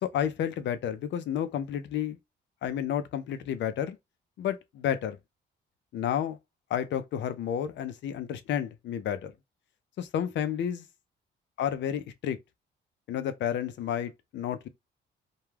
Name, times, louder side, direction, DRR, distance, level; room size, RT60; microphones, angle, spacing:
voice 1, 0.0-2.2 2.6-4.0 4.4-5.2 5.9-6.4 6.7-9.3 10.0-10.9 11.6-12.4 13.1-14.7, left 9 dB, 65° left, 0.5 m, -31 dB
2.2 x 2.2 x 3.1 m
cardioid pair, 90°, 20 cm